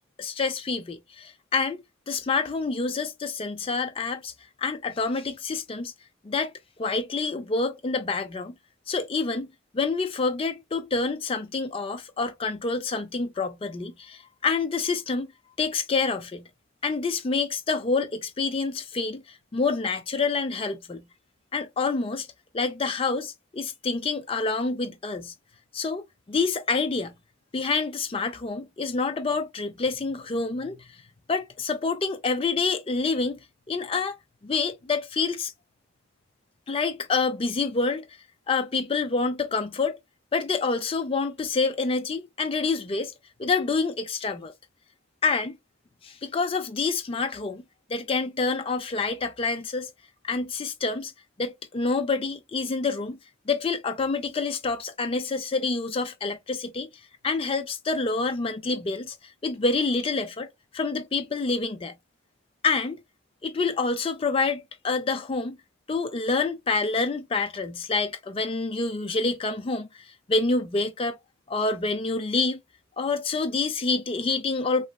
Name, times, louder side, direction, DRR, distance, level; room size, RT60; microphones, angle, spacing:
voice 1, 0.2-1.8 2.1-4.3 4.6-5.9 6.2-6.5 6.8-8.6 8.9-9.5 9.7-15.3 15.6-16.5 16.8-19.2 19.5-21.0 21.5-22.3 22.5-25.3 25.7-27.1 27.5-30.8 31.3-33.4 33.7-34.2 34.4-35.5 36.7-38.1 38.5-40.0 40.3-43.1 43.4-44.5 45.2-45.6 46.0-47.6 47.9-49.9 50.3-51.1 51.4-53.2 53.5-56.9 57.2-59.2 59.4-60.5 60.7-61.9 62.6-63.0 63.4-65.6 65.9-71.2 71.5-72.6 73.0-74.9, left 4 dB, 25° left, 0.4 m, -27 dB
3.0 x 2.5 x 2.2 m
head